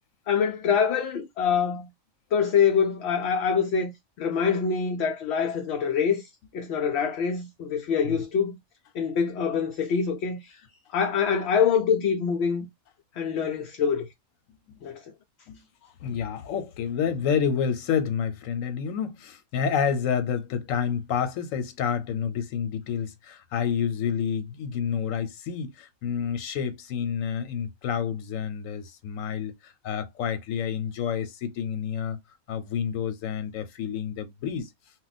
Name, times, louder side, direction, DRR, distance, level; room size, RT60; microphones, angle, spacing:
voice 1, 0.3-1.9 2.3-3.9 4.2-6.3 6.5-8.6 8.9-10.6 10.9-12.7 13.2-14.1 14.8-15.0, left 6 dB, 65° left, 0.7 m, -25 dB
voice 2, 16.0-32.2 32.5-34.7, left 7 dB, 85° left, 1.1 m, -29 dB
2.4 x 2.1 x 3.9 m
omnidirectional pair, 1.3 m